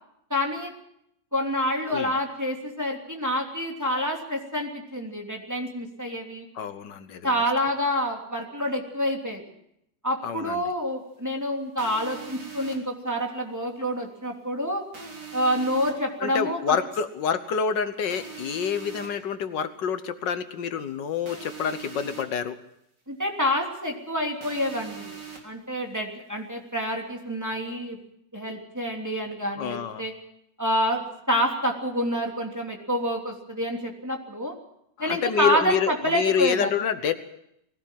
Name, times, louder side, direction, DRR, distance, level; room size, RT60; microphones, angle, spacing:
voice 1, 0.3-0.7 1.3-6.5 7.2-9.4 10.0-14.8 15.3-16.8 23.1-28.0 28.3-30.1 30.6-34.6 35.0-36.7, equal, 10° right, 1 dB, 3.1 m, -27 dB
voice 2, 6.6-7.4 10.2-10.6 16.2-22.6 29.6-30.0 35.0-37.1, left 7 dB, 80° left, 10 dB, 1.7 m, -27 dB
sound 1, 11.8-12.8 14.9-15.9 18.1-19.1 21.3-22.2 24.4-25.4, right 5 dB, 70° right, 4.2 m, -41 dB
20.5 x 17.0 x 7.6 m, 0.75 s
omnidirectional pair, 1.9 m